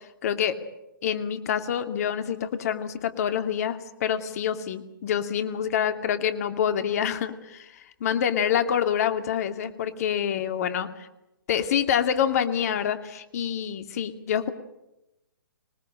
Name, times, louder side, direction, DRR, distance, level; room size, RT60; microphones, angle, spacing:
voice 1, 0.2-0.6 1.0-7.7 8.0-10.9 11.5-14.5, left 9 dB, 45° left, 8 dB, 2.5 m, -26 dB
26.0 x 19.5 x 8.8 m, 0.91 s
figure-of-eight pair, 125°, 11 cm